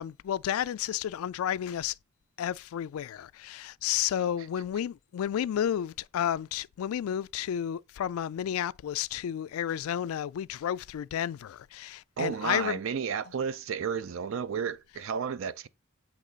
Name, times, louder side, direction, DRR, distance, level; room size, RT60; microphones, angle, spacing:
voice 1, 0.0-2.0 2.4-12.8, left 10 dB, 75° left, 0.3 m, -31 dB
voice 2, 12.2-15.7, right 7 dB, 65° right, 0.4 m, -32 dB
8.2 x 3.1 x 3.9 m
head